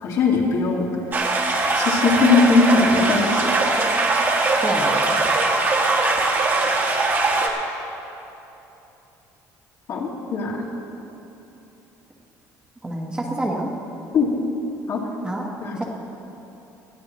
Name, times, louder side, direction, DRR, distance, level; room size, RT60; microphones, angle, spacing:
voice 1, 0.0-0.9 1.7-3.5 9.9-10.6 14.1-14.3 14.9-15.0 15.6-15.8, left 4 dB, 55° left, -2 dB, 2.2 m, -19 dB
sound 1, 1.1-7.5, right 3 dB, 30° right, 1.5 m, -21 dB
voice 2, 4.6-5.2 12.8-13.7 15.2-15.8, right 1 dB, 15° right, -1 dB, 1.3 m, -28 dB
20.0 x 13.5 x 3.1 m, 3.0 s
cardioid pair, 145°, 7 cm